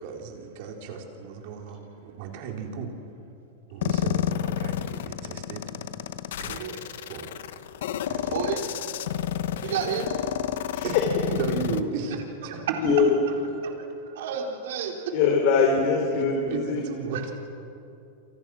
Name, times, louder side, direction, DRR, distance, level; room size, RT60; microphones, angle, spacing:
voice 1, 0.0-2.9 3.7-5.6 6.4-6.8 7.1-7.3 8.1-8.6 9.8-10.0 10.8-11.0 11.3-13.1 16.1-17.3, right 6 dB, 55° right, 2 dB, 4.1 m, -34 dB
sound 1, 3.8-11.8, left 11 dB, 75° left, 1.2 m, -30 dB
voice 2, 8.3-8.6 9.6-10.1 12.5-12.6 13.6-15.0 17.1-17.2, right 7 dB, 75° right, 2 dB, 3.8 m, -31 dB
voice 3, 12.8-13.1 15.1-16.8, left 5 dB, 55° left, 1 dB, 4.0 m, -22 dB
28.5 x 28.5 x 6.4 m, 2.8 s
supercardioid pair, 150°, 0 cm